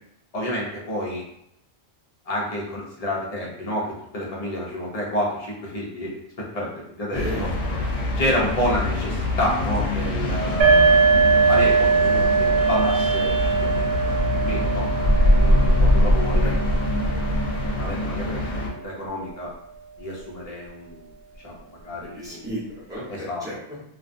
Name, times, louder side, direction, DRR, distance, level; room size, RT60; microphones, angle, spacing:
voice 1, 0.3-1.2 2.3-7.5 8.2-11.0 11.5-13.3 13.6-13.9 14.3-14.9 15.3-16.5 17.7-19.5 20.0-21.1 21.4-22.4 23.1-23.5, left 1 dB, 40° left, -3 dB, 0.6 m, -29 dB
sound 1, 7.1-18.7, left 1 dB, 75° left, 0.9 m, -23 dB
voice 2, 7.1-7.5 16.4-16.5 22.0-23.8, equal, 5° right, -9 dB, 0.9 m, -34 dB
sound 2, 10.6-18.1, right 5 dB, 65° right, 0.9 m, -21 dB
2.3 x 2.2 x 2.5 m, 0.76 s
omnidirectional pair, 1.2 m